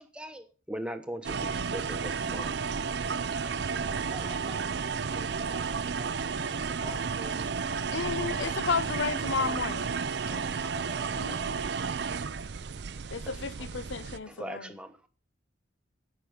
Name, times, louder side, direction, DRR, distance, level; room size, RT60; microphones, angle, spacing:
voice 1, 0.0-2.6 4.1-4.9 6.3-6.5 6.8-7.1 10.3-10.4 10.8-11.4 13.3-13.7 14.2-15.1, equal, 5° right, 1.0 m, -42 dB
sound 1, 1.2-14.2, right 5 dB, 60° right, 0.5 m, -32 dB
voice 2, 3.4-6.2 6.6-7.5 10.2-10.6, equal, 40° left, 5.0 m, -50 dB
voice 3, 7.9-9.9 11.1-11.6 13.1-14.7, left 5 dB, 70° left, 0.7 m, -32 dB
16.0 x 5.9 x 5.1 m
head